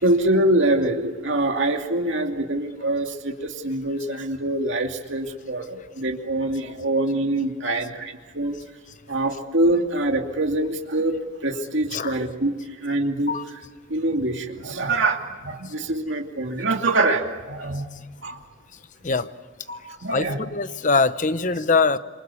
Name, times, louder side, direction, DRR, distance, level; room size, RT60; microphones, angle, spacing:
voice 1, 0.0-7.9 8.3-8.6 9.1-11.2 11.4-12.5 12.8-13.3 13.9-15.2 15.4-17.8 18.2-18.4 19.7-20.4, right 2 dB, 60° right, 3 dB, 2.5 m, -24 dB
voice 2, 20.1-22.0, left 4 dB, 35° left, 13 dB, 0.8 m, -22 dB
27.5 x 24.0 x 8.4 m, 1.4 s
head